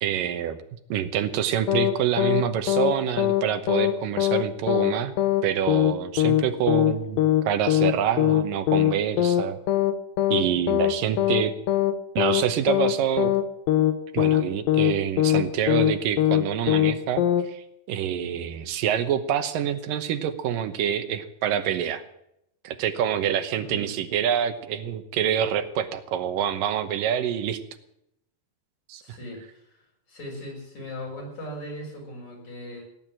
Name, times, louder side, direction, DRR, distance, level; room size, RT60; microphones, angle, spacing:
voice 1, 0.0-0.6 0.9-5.1 5.4-9.6 10.3-11.5 12.2-13.3 14.1-22.0 22.6-27.6 28.9-29.2, right 9 dB, 85° right, 9 dB, 2.7 m, -26 dB
sound 1, 1.7-1.9 2.2-2.4 2.7-2.9 3.2-3.4 3.7-3.9 4.2-4.4 4.7-4.9 5.2-5.4 5.7-5.9 6.2-6.4 6.7-6.9 7.2-7.4 7.7-7.9 8.2-8.4 8.7-8.9 9.2-9.4 9.7-9.9 10.2-10.4 10.7-10.9 11.2-11.4 11.7-11.9 12.2-12.4 12.7-12.9 13.2-13.4 13.7-13.9 14.2-14.4 14.7-14.9 15.2-15.4 15.7-15.9 16.2-16.4 16.7-16.9 17.2-17.4, left 13 dB, 85° left, 2.8 m, -21 dB
voice 2, 23.6-23.9 29.0-29.8 30.1-32.8, left 1 dB, 55° left, -1 dB, 7.4 m, -38 dB
17.5 x 10.5 x 7.4 m, 0.79 s
omnidirectional pair, 3.8 m